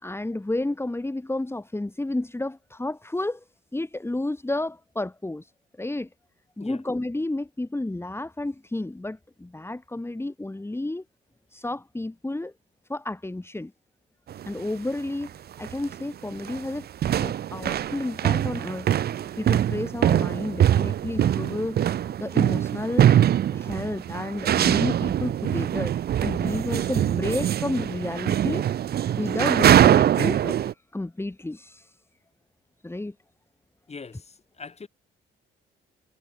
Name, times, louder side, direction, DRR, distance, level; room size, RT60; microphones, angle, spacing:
voice 1, 0.0-3.4 3.7-5.5 5.8-6.1 6.6-11.0 11.5-12.5 12.9-13.7 14.4-15.3 15.6-16.9 17.2-18.9 19.4-21.8 22.2-23.1 23.5-25.9 26.2-28.6 29.2-31.9 32.8-33.1, left 2 dB, 10° left, 4.6 m, -31 dB
sound 1, 14.3-14.5 15.3-15.4 15.6-16.0 16.3-30.7, right 10 dB, 55° right, 0.6 m, -23 dB
voice 2, 33.9-34.9, left 5 dB, 30° left, 3.7 m, -42 dB
cardioid pair, 90°, 20 cm